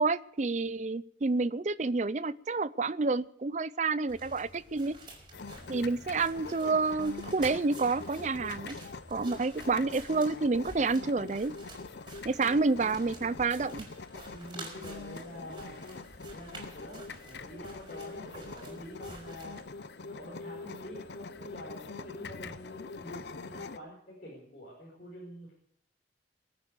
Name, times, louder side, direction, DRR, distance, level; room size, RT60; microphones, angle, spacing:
voice 1, 0.0-5.0 5.7-8.8 9.1-11.6 12.2-13.9, right 3 dB, 40° right, 17 dB, 0.5 m, -29 dB
sound 1, 4.1-19.6, right 2 dB, 25° right, 4.6 m, -50 dB
sound 2, 5.3-23.8, left 4 dB, 75° left, 0.7 m, -44 dB
voice 2, 14.3-15.8 16.3-19.6 20.0-25.5, equal, 50° left, -4 dB, 5.4 m, -46 dB
22.0 x 9.0 x 6.8 m, 0.70 s
head